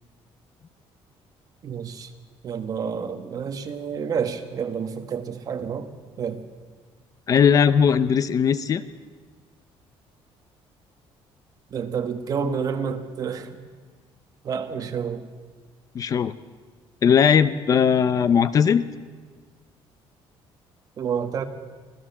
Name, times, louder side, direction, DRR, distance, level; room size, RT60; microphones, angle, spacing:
voice 1, 1.6-2.1 2.4-5.9 6.2-6.4 11.7-13.6 14.4-15.2 21.0-21.4, right 6 dB, 35° right, 7 dB, 1.5 m, -29 dB
voice 2, 7.3-8.8 15.9-16.3 17.0-18.8, left 7 dB, 35° left, 14 dB, 0.6 m, -19 dB
25.5 x 16.0 x 7.2 m, 1.4 s
cardioid pair, 170°, 10 cm